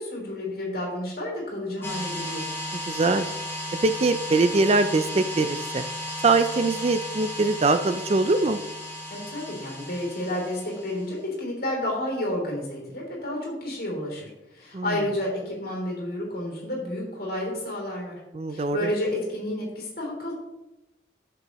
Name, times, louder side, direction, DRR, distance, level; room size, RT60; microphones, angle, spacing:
voice 1, 0.0-2.5 9.1-18.2 18.5-20.3, left 1 dB, 55° left, -2 dB, 3.3 m, -31 dB
sound 1, 1.8-11.2, left 1 dB, 15° left, 1.8 m, -35 dB
voice 2, 2.9-3.3 3.8-5.8 6.2-8.6 14.7-15.0 18.3-18.9, right 3 dB, 35° right, 10 dB, 0.4 m, -22 dB
12.5 x 6.9 x 3.0 m, 1.0 s
head